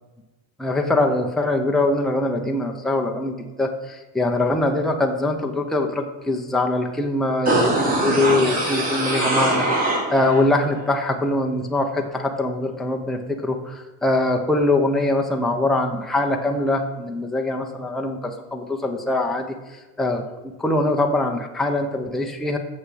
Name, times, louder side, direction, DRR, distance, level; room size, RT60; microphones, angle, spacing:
voice 1, 0.6-22.6, left 2 dB, ahead, 1 dB, 0.7 m, -23 dB
sound 1, 7.5-10.4 10.8-10.9, right 2 dB, 25° right, 2.6 m, -22 dB
7.2 x 6.5 x 7.7 m, 1.2 s
cardioid pair, 165°, 35 cm